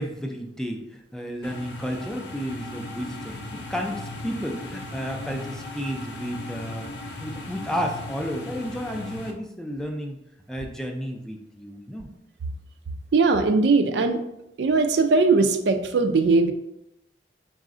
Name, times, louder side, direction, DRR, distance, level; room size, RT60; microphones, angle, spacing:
voice 1, 0.0-6.9 7.2-10.2 10.5-12.1, equal, 5° left, 2 dB, 0.4 m, -32 dB
sound 1, 1.4-9.3, left 2 dB, 80° left, 0.6 m, -37 dB
voice 2, 13.1-14.2 14.6-16.5, right 3 dB, 75° right, 7 dB, 0.4 m, -20 dB
4.0 x 2.5 x 3.7 m, 0.84 s
head